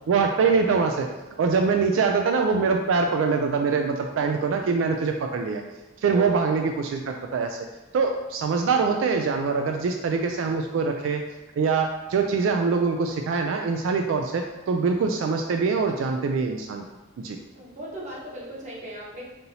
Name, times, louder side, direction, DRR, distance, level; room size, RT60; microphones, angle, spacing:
voice 1, 0.1-1.1 1.4-5.6 6.0-7.6 7.9-11.2 11.6-16.8 17.2-17.4, right 4 dB, 80° right, 4 dB, 0.3 m, -24 dB
voice 2, 17.5-19.2, equal, 40° right, -5 dB, 1.1 m, -37 dB
5.3 x 2.8 x 2.7 m, 1.1 s
head